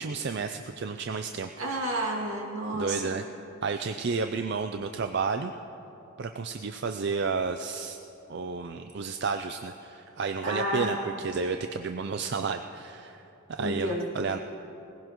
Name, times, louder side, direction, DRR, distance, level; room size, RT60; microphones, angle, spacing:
voice 1, 0.0-1.5 2.7-3.2 3.6-5.5 6.2-8.0 8.3-13.2 13.5-14.4, right 5 dB, 50° right, 7 dB, 0.4 m, -31 dB
voice 2, 1.6-3.2 10.4-11.1 13.6-14.1, right 1 dB, 75° right, -1 dB, 2.3 m, -30 dB
20.0 x 16.0 x 3.0 m, 2.9 s
head